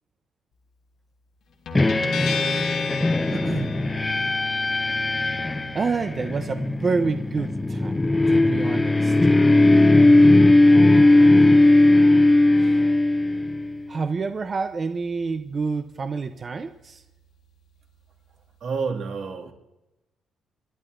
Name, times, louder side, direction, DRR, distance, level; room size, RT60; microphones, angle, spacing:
Guitar, 1.7-18.9, left 3 dB, 70° left, 1.6 m, -39 dB
sound 1, 1.7-13.8, left 2 dB, 20° left, 0.3 m, -18 dB
voice 1, 3.3-3.7 5.7-8.0 8.3-9.1 12.6-12.8 13.9-17.0, right 4 dB, 40° right, 0.6 m, -28 dB
voice 2, 10.0-10.6 10.9-11.5 18.6-19.5, right 5 dB, 70° right, 2.0 m, -31 dB
26.5 x 11.0 x 2.6 m
cardioid pair, 90°, 0 cm